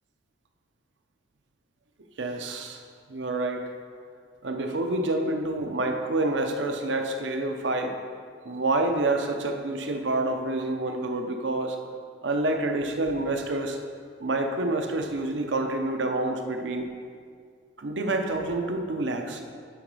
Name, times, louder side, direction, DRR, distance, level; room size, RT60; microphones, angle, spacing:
voice 1, 2.2-2.8 3.1-3.6 4.4-7.9 8.4-11.8 12.2-13.8 14.2-16.9 17.8-19.4, right 2 dB, 85° right, 4 dB, 0.7 m, -28 dB
11.5 x 4.0 x 4.7 m, 2.1 s
head